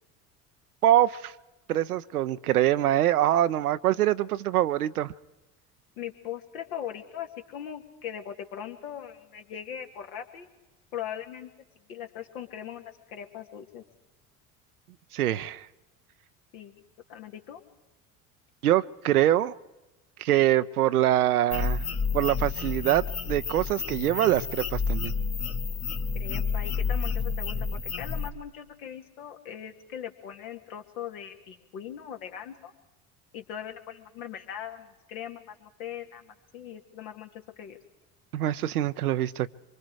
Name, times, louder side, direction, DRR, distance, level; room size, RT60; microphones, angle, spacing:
voice 1, 0.8-1.3 1.7-5.1 15.1-15.7 18.6-19.6 20.2-21.8 22.1-25.1 38.3-39.5, right 13 dB, 85° right, 0.6 m, -24 dB
voice 2, 6.0-10.5 10.9-11.5 11.9-13.8 16.5-16.7 17.1-17.6 26.1-32.7 33.3-37.3 37.6-37.8, left 9 dB, 70° left, 2.2 m, -40 dB
sound 1, 21.5-28.3, left 5 dB, 30° left, 1.3 m, -30 dB
25.5 x 24.0 x 4.7 m
hypercardioid pair, 70°, 43 cm